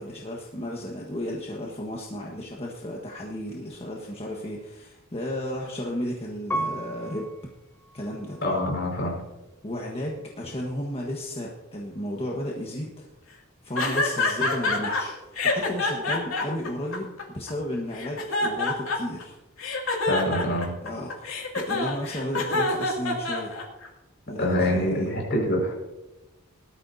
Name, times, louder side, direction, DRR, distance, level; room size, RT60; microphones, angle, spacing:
voice 1, 0.0-7.3 7.9-8.4 9.6-13.1 13.6-19.4 20.8-23.5 24.3-25.1, left 1 dB, 30° left, -2 dB, 1.4 m, -33 dB
Piano, 6.5-9.3 9.9-10.6, right 1 dB, 10° left, 1.0 m, -36 dB
voice 2, 8.4-9.2 20.1-20.7 24.4-25.7, left 1 dB, 55° left, -2 dB, 5.3 m, -25 dB
sound 1, 13.8-15.0 15.4-17.5 17.9-19.2 19.6-23.9, left 3 dB, 75° left, 2.6 m, -26 dB
19.0 x 13.0 x 2.8 m, 1.0 s
head